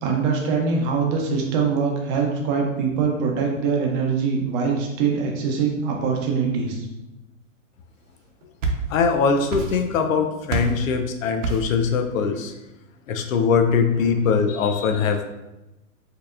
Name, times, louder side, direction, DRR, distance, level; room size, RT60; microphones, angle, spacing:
voice 1, 0.0-6.8, right 5 dB, 30° right, 1 dB, 0.7 m, -23 dB
sound 1, 8.2-9.2 9.5-10.1 10.5-10.9 11.4-11.8, right 3 dB, 75° right, 0.8 m, -27 dB
voice 2, 8.9-12.5 13.1-15.2, left 5 dB, 80° left, 6 dB, 0.6 m, -21 dB
4.4 x 2.8 x 2.4 m, 0.99 s
hypercardioid pair, 145°, 39 cm